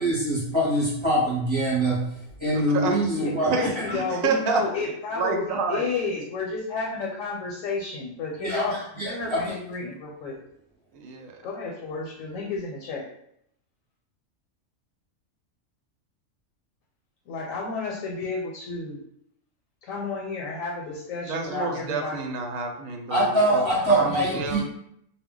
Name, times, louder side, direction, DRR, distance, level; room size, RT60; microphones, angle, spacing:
voice 1, 0.0-2.1 2.4-3.8 8.4-9.4 23.1-24.6, right 1 dB, 30° right, -7 dB, 0.6 m, -24 dB
voice 2, 2.4-3.0 3.4-4.6 5.2-5.8 10.9-11.4 21.3-24.6, right 4 dB, 90° right, 3 dB, 1.0 m, -29 dB
voice 3, 3.2-8.8 9.0-10.4 11.4-13.1 17.3-19.0 19.8-22.3, left 4 dB, 85° left, -1 dB, 1.0 m, -31 dB
2.2 x 2.1 x 3.6 m, 0.74 s
omnidirectional pair, 1.3 m